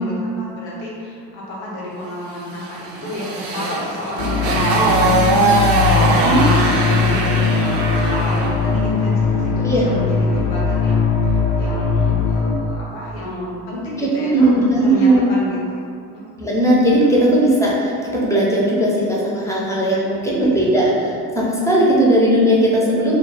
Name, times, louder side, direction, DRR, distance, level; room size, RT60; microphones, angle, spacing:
voice 1, 0.0-6.5 7.1-15.8 17.0-17.1 20.8-20.9, left 1 dB, 85° left, -5 dB, 0.8 m, -31 dB
Motorcycle, 2.5-8.6, right 2 dB, 60° right, 0.6 m, -20 dB
sound 1, 4.2-12.6, left 5 dB, 40° left, 0.4 m, -19 dB
voice 2, 14.0-15.2 16.4-23.2, right 1 dB, 5° left, -5 dB, 0.7 m, -17 dB
2.3 x 2.2 x 3.2 m, 2.4 s
hypercardioid pair, 55°, 50 cm